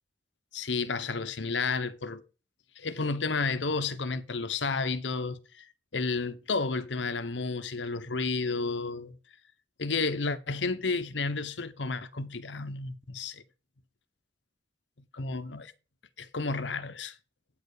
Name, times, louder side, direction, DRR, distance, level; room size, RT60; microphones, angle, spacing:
voice 1, 0.5-2.2 2.8-5.7 5.9-9.2 9.8-13.4 15.1-15.7 16.2-17.1, left 4 dB, 90° left, 1.0 m, -31 dB
9.4 x 6.9 x 4.9 m
head